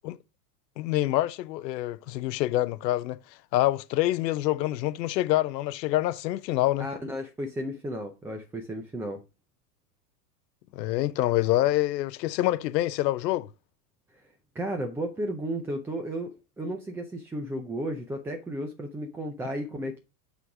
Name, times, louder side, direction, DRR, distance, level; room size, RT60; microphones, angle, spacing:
voice 1, 0.8-3.2 3.5-6.9 10.7-13.5, left 15 dB, 85° left, 0.8 m, -26 dB
voice 2, 6.8-9.2 14.1-14.2 14.5-20.0, right 1 dB, 5° right, 0.4 m, -33 dB
8.3 x 3.9 x 4.8 m
supercardioid pair, 145°, 49 cm